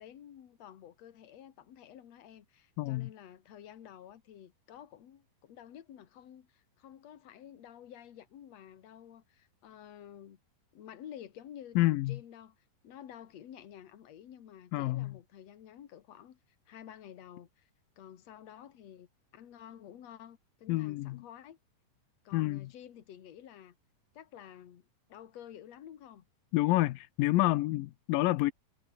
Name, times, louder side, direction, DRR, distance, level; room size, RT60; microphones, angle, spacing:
voice 1, 0.0-10.4 10.7-12.6 12.8-16.4 16.7-17.7 18.0-21.6 22.2-23.8 24.1-26.2, left 10 dB, 55° left, 2.8 m, -51 dB
voice 2, 2.8-3.1 11.8-12.2 14.7-15.1 20.7-21.2 22.3-22.7 26.5-28.5, left 18 dB, 90° left, 2.5 m, -28 dB
omnidirectional pair, 3.9 m